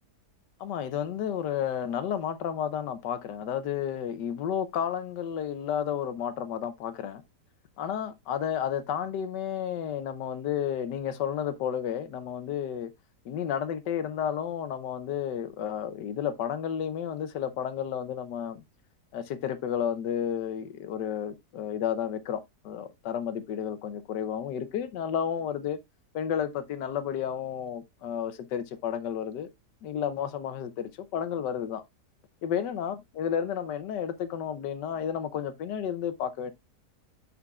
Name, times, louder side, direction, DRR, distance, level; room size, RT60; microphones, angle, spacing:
voice 1, 0.6-7.2 7.8-12.9 13.2-18.6 19.1-25.8 26.1-29.5 29.8-31.8 32.4-36.5, left 9 dB, 90° left, 1.4 m, -32 dB
9.6 x 5.5 x 2.3 m
omnidirectional pair, 1.8 m